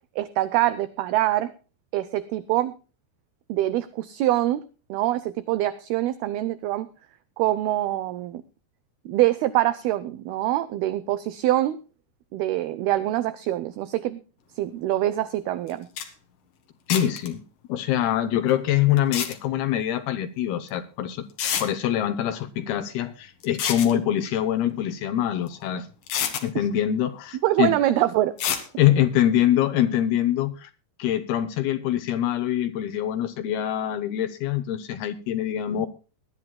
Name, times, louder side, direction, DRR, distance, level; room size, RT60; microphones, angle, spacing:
voice 1, 0.2-1.5 1.9-2.7 3.5-4.6 4.9-6.9 7.4-8.4 9.1-11.8 12.3-14.2 14.6-15.9 27.4-28.3, right 14 dB, 80° right, 14 dB, 2.4 m, -24 dB
sound 1, 15.7-15.8 16.0-16.1 16.9-17.3 19.0-19.3 20.7-20.8 21.4-21.7 23.4-23.9 25.5-25.6 26.1-26.4 28.4-28.7, left 9 dB, 60° left, 2.9 m, -27 dB
voice 2, 16.9-17.4 17.7-21.3 21.6-25.9 26.4-27.7 28.8-30.7 31.0-35.9, left 11 dB, 75° left, 9 dB, 2.5 m, -24 dB
21.0 x 12.0 x 2.2 m, 0.34 s
omnidirectional pair, 5.0 m